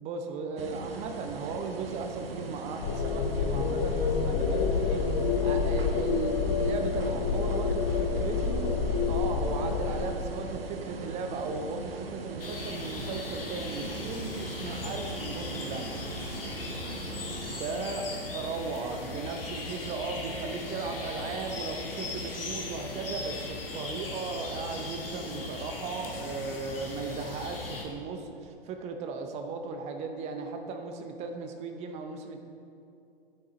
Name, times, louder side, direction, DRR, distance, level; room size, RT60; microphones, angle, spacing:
voice 1, 0.0-5.0 5.4-15.9 17.5-18.0 18.3-32.4, right 4 dB, 25° right, 5 dB, 0.6 m, -36 dB
sound 1, 0.6-17.6, right 3 dB, 75° right, 0.8 m, -40 dB
sound 2, 2.8-10.0, left 5 dB, 40° left, 0.8 m, -28 dB
sound 3, 12.4-27.8, left 3 dB, 70° left, 1.5 m, -38 dB
10.0 x 7.4 x 3.9 m, 2.7 s
figure-of-eight pair, 105°, 29 cm